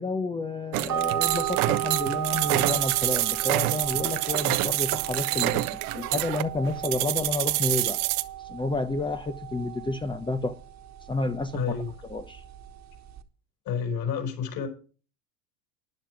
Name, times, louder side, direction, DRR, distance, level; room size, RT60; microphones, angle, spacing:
voice 1, 0.0-5.7 5.9-8.0 8.5-10.5 11.1-11.8 12.1-12.4, left 3 dB, 10° left, 0.7 m, -30 dB
sound 1, 0.7-8.2, right 19 dB, 65° right, 1.0 m, -27 dB
sound 2, 0.9-13.2, right 11 dB, 35° right, 1.6 m, -35 dB
voice 2, 11.5-11.9 13.7-14.7, left 7 dB, 45° left, 4.6 m, -29 dB
12.0 x 10.5 x 4.6 m
hypercardioid pair, 95°, 49 cm